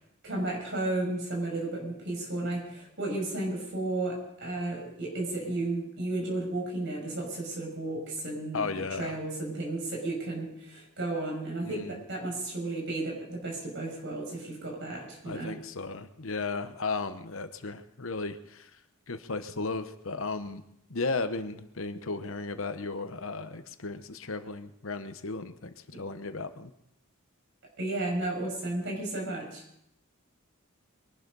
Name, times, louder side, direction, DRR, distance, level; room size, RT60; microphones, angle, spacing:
voice 1, 0.2-15.6 27.8-29.6, right 2 dB, 60° right, 0 dB, 6.1 m, -33 dB
voice 2, 8.5-9.2 11.6-12.0 15.2-18.7 19.1-20.6 20.9-26.7, left 3 dB, 70° left, 10 dB, 1.0 m, -35 dB
23.0 x 11.5 x 4.1 m, 0.76 s
head